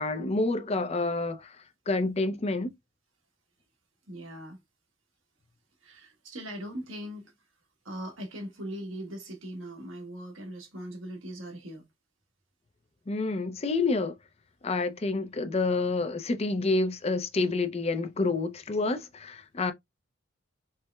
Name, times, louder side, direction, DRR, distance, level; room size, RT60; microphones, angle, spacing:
voice 1, 0.0-1.6 1.9-2.7 13.1-14.1 14.6-19.7, left 3 dB, 30° left, 0.4 m, -28 dB
voice 2, 4.1-4.6 5.8-7.3 7.8-11.8, equal, 70° right, 1.3 m, -40 dB
4.4 x 2.1 x 2.3 m
head